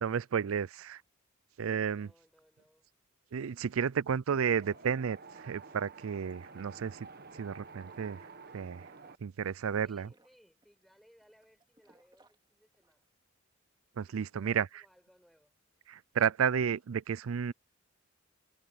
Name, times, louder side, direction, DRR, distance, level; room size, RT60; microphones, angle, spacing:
voice 1, 0.0-1.0 1.6-2.1 3.3-7.0 7.4-8.2 8.5-8.9 9.2-10.1 14.0-14.7 15.9-17.5, right 7 dB, 85° right, 0.4 m, -32 dB
voice 2, 1.9-2.9 9.8-13.1 14.0-15.5, equal, ahead, 7.0 m, -65 dB
sound 1, 4.3-13.1, right 2 dB, 20° right, 2.8 m, -69 dB
Wind, 4.6-9.2, right 4 dB, 50° right, 1.1 m, -51 dB
head